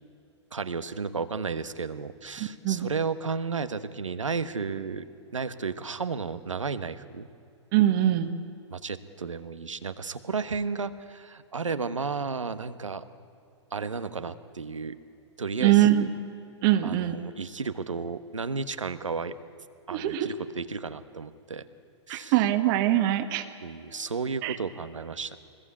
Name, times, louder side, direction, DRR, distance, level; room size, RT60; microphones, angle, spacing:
voice 1, 0.5-5.0 5.3-7.3 8.7-13.0 13.7-14.9 15.4-16.1 16.8-19.3 19.9-21.6 22.1-22.3 23.6-25.4, right 5 dB, 90° right, 12 dB, 1.3 m, -33 dB
voice 2, 2.4-2.9 7.7-8.3 15.6-16.1 16.6-17.2 19.9-20.3 22.1-23.5 24.4-24.6, right 13 dB, 45° right, 7 dB, 1.5 m, -23 dB
24.0 x 21.0 x 8.5 m, 2.6 s
hypercardioid pair, 115°, 16 cm